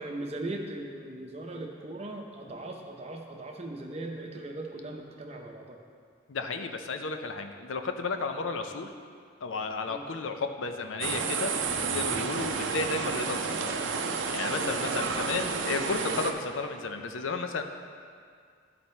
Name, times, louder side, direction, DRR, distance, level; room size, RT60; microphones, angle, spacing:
voice 1, 0.0-5.8 9.9-10.1 14.6-14.8, right 2 dB, 30° right, 1 dB, 0.7 m, -39 dB
voice 2, 6.3-8.9 9.4-11.5 11.8-13.8 14.1-17.6, left 4 dB, 75° left, 6 dB, 0.5 m, -33 dB
sound 1, 11.0-16.3, right 5 dB, 70° right, 0.5 m, -30 dB
11.0 x 4.2 x 4.3 m, 2.1 s
head